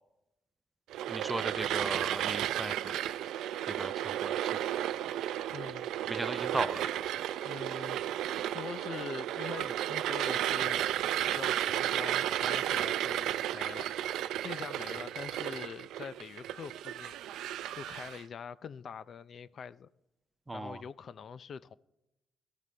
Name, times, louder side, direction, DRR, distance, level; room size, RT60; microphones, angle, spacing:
sound 1, 0.9-18.2, right 12 dB, 85° right, 0.5 m, -33 dB
voice 1, 1.1-3.0 3.7-4.5 6.1-6.9 20.5-20.8, right 2 dB, 15° right, 0.4 m, -37 dB
voice 2, 5.5-5.9 7.4-8.0 8.5-10.9 11.3-13.9 14.4-17.1 17.8-19.9 20.5-21.8, left 6 dB, 55° left, 0.4 m, -44 dB
17.5 x 13.5 x 3.3 m
cardioid pair, 90°, 0 cm